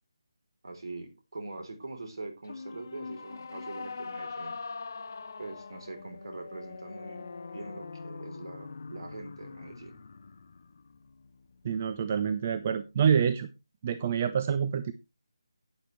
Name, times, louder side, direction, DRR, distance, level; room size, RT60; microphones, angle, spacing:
voice 1, 0.6-4.6 5.4-10.0, right 2 dB, 60° right, 3.5 m, -43 dB
sound 1, 2.4-11.8, left 4 dB, 40° left, 0.7 m, -43 dB
voice 2, 11.6-13.5 13.8-14.9, right 7 dB, 20° right, 0.4 m, -27 dB
11.5 x 9.0 x 3.2 m
figure-of-eight pair, 175°, 2 cm